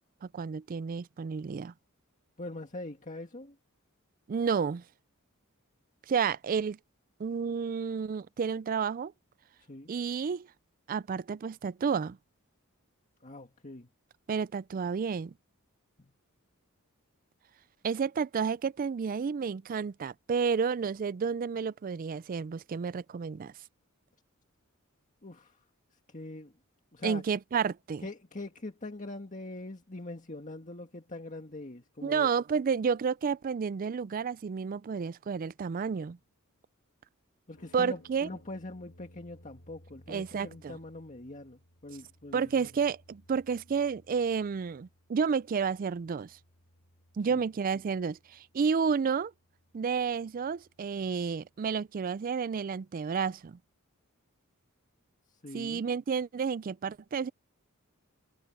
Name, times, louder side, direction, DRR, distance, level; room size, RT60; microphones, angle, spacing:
voice 1, 0.2-1.7 4.3-4.8 6.1-6.8 7.2-9.1 9.9-10.5 10.9-12.2 14.3-15.3 17.8-23.5 27.0-28.0 32.0-36.2 37.7-38.3 40.1-40.8 42.3-46.4 47.2-49.3 49.7-53.6 55.5-57.3, right 6 dB, 40° right, 0.3 m, -31 dB
voice 2, 2.4-3.6 9.7-9.9 13.2-13.9 16.0-16.1 25.2-25.6 26.1-26.5 26.9-27.2 28.0-32.3 37.5-42.7 47.3-47.4 55.4-55.9, left 2 dB, 35° left, 1.9 m, -43 dB
sound 1, 37.5-51.6, equal, 70° left, 3.7 m, -61 dB
head